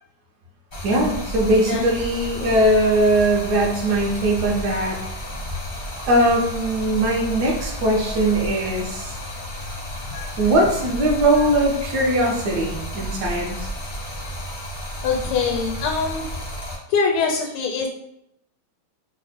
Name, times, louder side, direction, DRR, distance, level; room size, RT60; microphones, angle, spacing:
Stream, 0.7-16.7, equal, 50° left, 0.5 m, -32 dB
voice 1, 0.8-5.0 6.1-9.1 10.4-13.7, right 1 dB, 65° right, -1 dB, 1.0 m, -20 dB
voice 2, 10.1-10.5 15.0-16.2 16.9-17.9, left 5 dB, 80° left, 2 dB, 1.4 m, -23 dB
3.4 x 2.0 x 4.0 m, 0.78 s
omnidirectional pair, 2.3 m